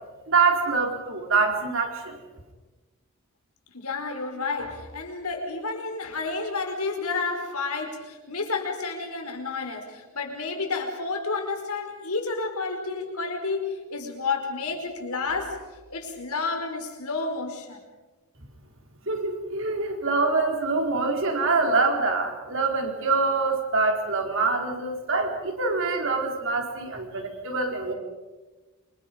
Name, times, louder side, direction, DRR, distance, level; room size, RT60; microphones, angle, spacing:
voice 1, 0.3-2.2 19.1-27.9, right 3 dB, 60° right, 2 dB, 4.3 m, -25 dB
voice 2, 3.7-15.6 15.9-17.8, left 4 dB, 85° left, 3 dB, 5.1 m, -30 dB
28.0 x 26.0 x 5.3 m, 1.2 s
head